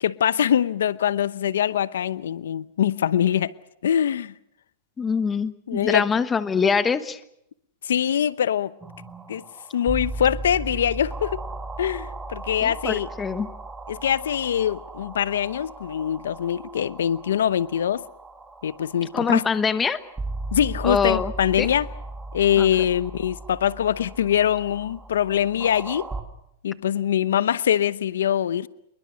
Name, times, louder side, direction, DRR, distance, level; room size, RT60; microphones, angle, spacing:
voice 1, 0.0-3.5 3.8-4.3 5.7-6.1 7.8-8.7 9.3-9.4 9.7-11.4 11.8-13.1 13.9-18.0 18.6-19.4 20.5-21.9 22.3-26.1 26.6-28.7, left 9 dB, 90° left, 0.8 m, -23 dB
voice 2, 5.0-7.2 12.6-13.5 19.1-20.0 20.8-21.3 21.6-21.7 22.6-22.7, left 5 dB, 15° left, 1.1 m, -23 dB
sound 1, 8.8-26.2, right 2 dB, 10° right, 2.4 m, -37 dB
27.0 x 22.5 x 6.3 m
supercardioid pair, 150°, 0 cm